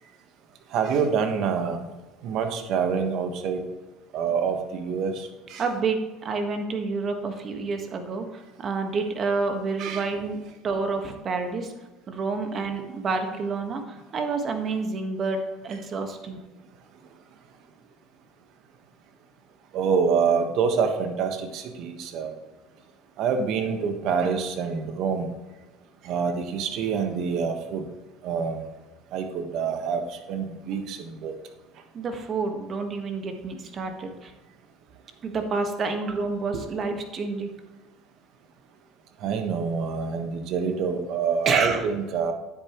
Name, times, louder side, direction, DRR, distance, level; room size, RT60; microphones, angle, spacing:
voice 1, 0.7-1.9 2.2-3.6 4.1-5.1 5.5-5.6 9.8-10.1 19.7-22.3 23.2-25.2 26.0-27.8 28.2-28.6 29.1-30.0 30.3-31.3 36.5-36.6 39.2-42.3, right 6 dB, 60° right, 6 dB, 1.4 m, -26 dB
voice 2, 5.6-10.4 10.6-11.7 12.1-16.4 31.9-34.3 35.2-37.5 41.4-41.8, right 4 dB, 40° right, 5 dB, 1.5 m, -29 dB
9.7 x 8.6 x 3.1 m, 1.1 s
supercardioid pair, 100°, 0 cm